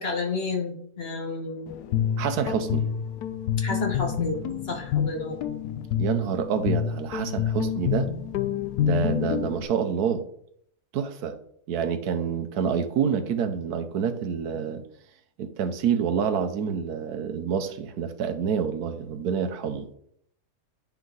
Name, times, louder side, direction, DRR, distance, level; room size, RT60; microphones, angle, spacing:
voice 1, 0.0-1.7 3.6-5.4, left 3 dB, 45° left, 1 dB, 1.4 m, -31 dB
Guitar, 1.7-9.6, left 9 dB, 90° left, 1.1 m, -28 dB
voice 2, 2.2-2.9 6.0-8.1 8.8-10.3 10.9-11.3 11.7-14.8 15.4-19.9, right 7 dB, 90° right, 8 dB, 1.3 m, -27 dB
10.5 x 3.5 x 3.8 m, 0.67 s
omnidirectional pair, 1.6 m